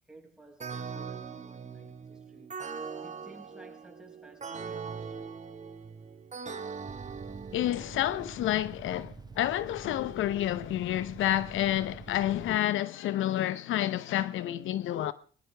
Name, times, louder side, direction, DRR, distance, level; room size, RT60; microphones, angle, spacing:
voice 1, 0.1-5.3, right 1 dB, 5° right, 6.1 m, -55 dB
sound 1, 0.6-8.2, right 5 dB, 35° right, 2.1 m, -41 dB
sound 2, 6.9-12.6, right 4 dB, 20° right, 0.8 m, -47 dB
voice 2, 7.5-15.1, left 13 dB, 80° left, 0.9 m, -29 dB
20.5 x 20.0 x 3.4 m
cardioid pair, 90°, 20 cm